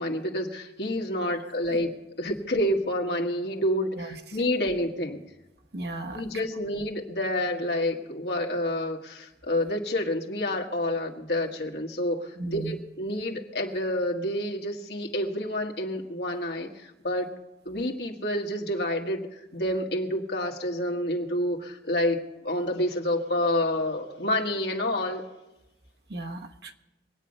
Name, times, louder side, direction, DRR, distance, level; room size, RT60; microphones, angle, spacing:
voice 1, 0.0-1.9 2.2-5.2 6.1-17.3 17.6-25.3, left 1 dB, 70° left, 2 dB, 1.8 m, -28 dB
voice 2, 5.7-6.2 12.4-12.8 26.1-26.7, right 2 dB, 65° right, 4 dB, 1.2 m, -36 dB
23.5 x 9.2 x 5.4 m, 0.96 s
head